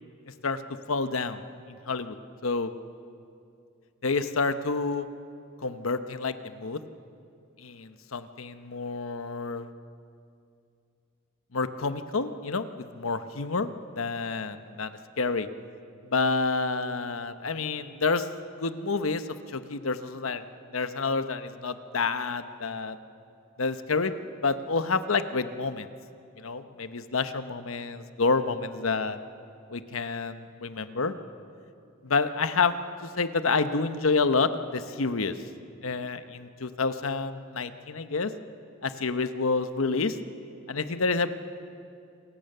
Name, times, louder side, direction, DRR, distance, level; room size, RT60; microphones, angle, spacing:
voice 1, 0.9-1.4 1.7-2.2 2.4-2.7 4.0-5.1 5.6-6.8 7.6-9.7 11.5-15.5 16.1-18.3 18.6-19.2 19.5-20.4 20.7-23.0 23.6-24.1 24.4-25.9 26.4-29.2 29.7-31.1 32.0-32.7 33.0-35.3 35.8-38.3 38.8-40.2 40.7-41.3, left 4 dB, 85° left, 11 dB, 1.0 m, -28 dB
27.5 x 16.0 x 6.7 m, 2.5 s
head